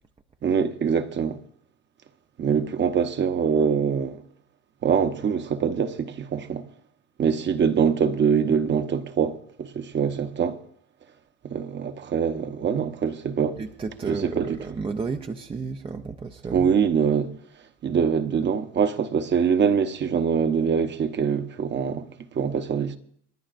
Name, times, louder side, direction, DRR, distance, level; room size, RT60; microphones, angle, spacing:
voice 1, 0.4-1.4 2.4-4.2 4.8-6.6 7.2-10.6 11.4-13.6 14.1-14.6 16.5-17.3 17.8-22.1 22.3-23.0, right 7 dB, 30° right, 0.9 m, -24 dB
voice 2, 13.6-16.7, right 4 dB, 15° right, 0.5 m, -32 dB
28.0 x 10.0 x 2.5 m
supercardioid pair, 105°, 36 cm